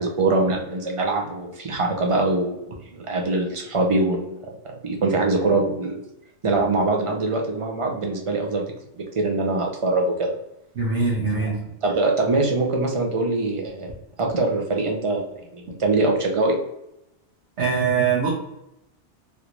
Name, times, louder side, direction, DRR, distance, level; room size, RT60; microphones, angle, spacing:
voice 1, 0.0-4.5 4.8-6.0 6.4-8.6 8.9-10.3 11.4-13.9 14.2-16.6, right 2 dB, 40° right, 1 dB, 0.5 m, -23 dB
voice 2, 10.8-11.6 17.6-18.3, right 5 dB, 70° right, -5 dB, 1.1 m, -22 dB
3.4 x 2.5 x 2.9 m, 0.83 s
omnidirectional pair, 1.2 m